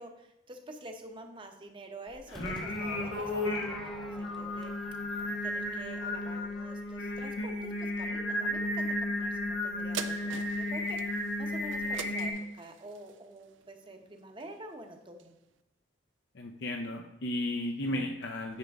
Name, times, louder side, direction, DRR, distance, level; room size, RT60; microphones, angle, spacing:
voice 1, 0.0-4.7 5.1-15.3, right 1 dB, 25° right, 5 dB, 0.8 m, -48 dB
Singing, 2.3-12.3, left 1 dB, 80° left, 1.6 m, -34 dB
Crowd / Fireworks, 2.3-7.6, equal, ahead, 0.6 m, -50 dB
sound 1, 9.9-14.7 15.2-15.3, right 8 dB, 70° right, 0.4 m, -44 dB
voice 2, 16.3-18.6, left 1 dB, 60° left, 3 dB, 0.6 m, -34 dB
9.7 x 5.1 x 3.5 m, 0.96 s
head